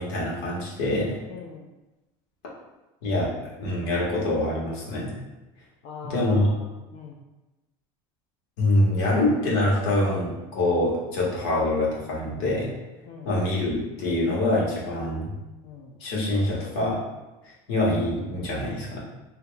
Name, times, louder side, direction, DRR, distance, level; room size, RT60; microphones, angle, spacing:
voice 1, 0.0-1.2 3.0-3.3 3.6-5.1 6.0-6.5 8.6-12.7 13.2-15.3 16.0-17.0 17.4-19.0, left 1 dB, 90° left, -5 dB, 1.5 m, -25 dB
voice 2, 1.3-1.7 5.8-7.2 13.1-13.3 15.6-16.0, left 5 dB, 60° left, -3 dB, 0.6 m, -41 dB
5.1 x 2.8 x 2.3 m, 1.1 s
cardioid pair, 150°, 12 cm